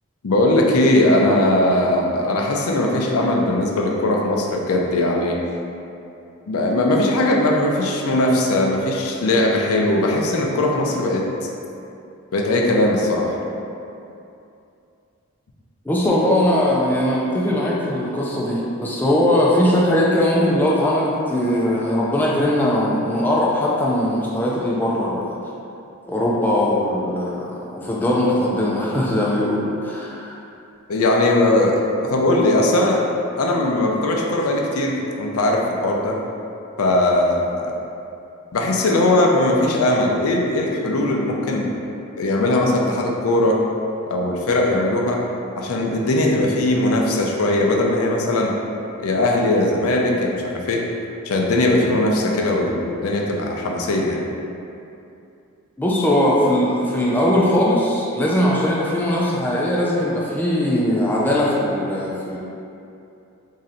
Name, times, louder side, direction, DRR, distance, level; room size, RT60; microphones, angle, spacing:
voice 1, 0.2-5.4 6.5-11.3 12.3-13.3 30.9-33.0 33.4-36.2 36.8-37.7 38.5-41.7 42.2-43.6 44.1-45.2 45.6-48.6 49.0-50.8 51.3-54.2, left 1 dB, 85° left, 0 dB, 0.5 m, -19 dB
voice 2, 15.9-25.4 26.1-30.3 55.8-62.4, left 1 dB, 10° left, -5 dB, 0.3 m, -20 dB
3.1 x 2.7 x 3.8 m, 2.7 s
head